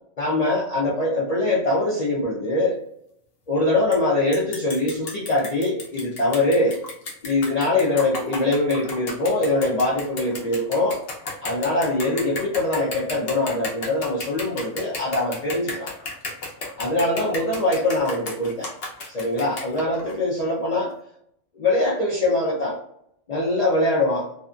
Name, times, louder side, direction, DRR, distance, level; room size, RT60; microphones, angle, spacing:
voice 1, 0.2-2.8 3.5-6.8 7.2-11.0 11.4-15.9 16.8-18.7 19.1-20.9 21.6-22.8 23.3-24.3, left 2 dB, 75° left, -4 dB, 0.3 m, -23 dB
sound 1, 3.9-4.0 4.3-20.2, left 3 dB, 55° left, 0.8 m, -34 dB
2.6 x 2.5 x 2.3 m, 0.73 s
omnidirectional pair, 1.4 m